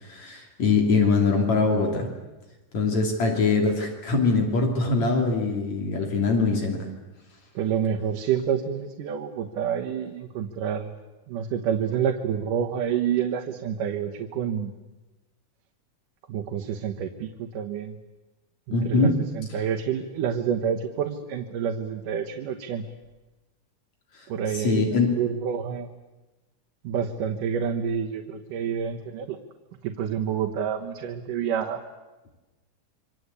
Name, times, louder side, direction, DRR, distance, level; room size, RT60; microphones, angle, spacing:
voice 1, 0.0-2.1 2.7-6.8 18.7-19.2 24.2-24.3 24.5-25.1, left 4 dB, 60° left, 2 dB, 4.1 m, -23 dB
voice 2, 7.6-10.9 11.3-14.7 16.3-18.0 18.7-22.8 24.3-25.9 26.8-29.4 29.8-31.8, right 8 dB, 90° right, 2 dB, 2.9 m, -28 dB
27.5 x 24.5 x 8.3 m, 1.1 s
omnidirectional pair, 3.6 m